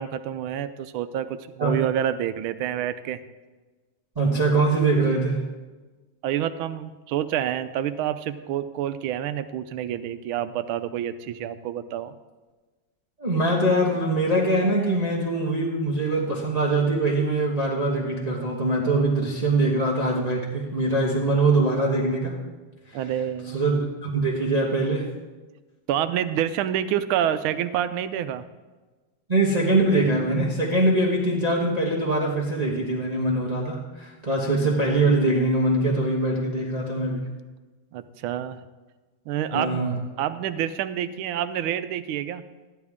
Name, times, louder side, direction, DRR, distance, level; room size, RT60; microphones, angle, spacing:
voice 1, 0.0-3.2 6.2-12.1 22.9-23.6 25.9-28.4 37.9-38.6 39.3-39.8 40.2-42.4, right 10 dB, 85° right, 12 dB, 1.5 m, -28 dB
voice 2, 4.2-5.4 13.2-22.4 23.5-25.1 29.3-37.3 39.5-39.9, right 2 dB, 25° right, -3 dB, 1.1 m, -23 dB
14.0 x 10.5 x 3.6 m, 1.3 s
omnidirectional pair, 2.2 m